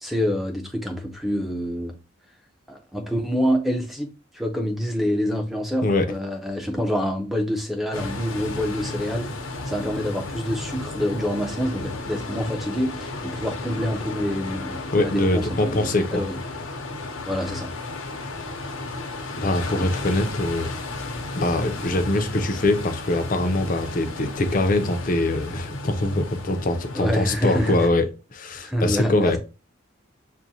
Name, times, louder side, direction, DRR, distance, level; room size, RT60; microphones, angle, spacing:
voice 1, 0.0-1.9 2.7-16.4 17.2-17.7 26.9-27.9 28.5-29.4, equal, ahead, 0.6 m, -27 dB
sound 1, 7.9-27.9, left 2 dB, 85° left, 0.8 m, -34 dB
voice 2, 14.9-16.2 19.4-20.8 21.3-29.4, left 2 dB, 40° left, 0.5 m, -23 dB
6.0 x 2.2 x 2.7 m
head